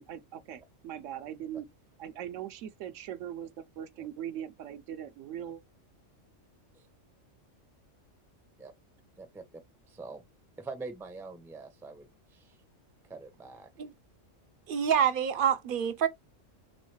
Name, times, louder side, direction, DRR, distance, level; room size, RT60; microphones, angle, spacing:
voice 1, 0.0-1.7 2.0-5.6, right 10 dB, 80° right, 0.9 m, -40 dB
voice 2, 9.9-10.2 10.6-12.6 13.1-13.7, right 3 dB, 5° right, 0.4 m, -44 dB
voice 3, 14.7-16.1, right 8 dB, 60° right, 0.6 m, -26 dB
3.4 x 3.1 x 3.0 m
omnidirectional pair, 1.3 m